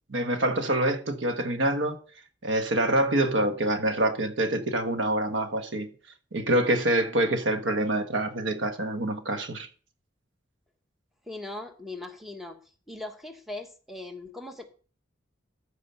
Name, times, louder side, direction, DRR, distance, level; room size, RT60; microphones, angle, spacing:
voice 1, 0.1-2.0 2.4-5.9 6.3-9.7, right 1 dB, 75° right, 1.3 m, -26 dB
voice 2, 11.3-12.6 12.9-14.7, left 2 dB, ahead, 1.3 m, -39 dB
14.0 x 4.9 x 5.6 m
head